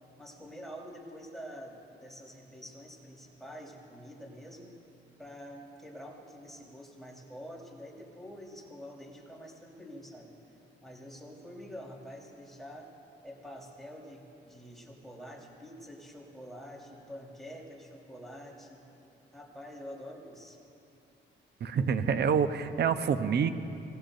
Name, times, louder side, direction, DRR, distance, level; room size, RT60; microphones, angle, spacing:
voice 1, 0.2-4.7 5.2-10.3 10.8-12.9 13.2-18.8 19.3-20.6, equal, ahead, -3 dB, 4.0 m, -47 dB
voice 2, 21.6-23.5, right 6 dB, 55° right, 10 dB, 0.9 m, -27 dB
25.5 x 19.5 x 2.7 m, 2.8 s
cardioid pair, 90°, 20 cm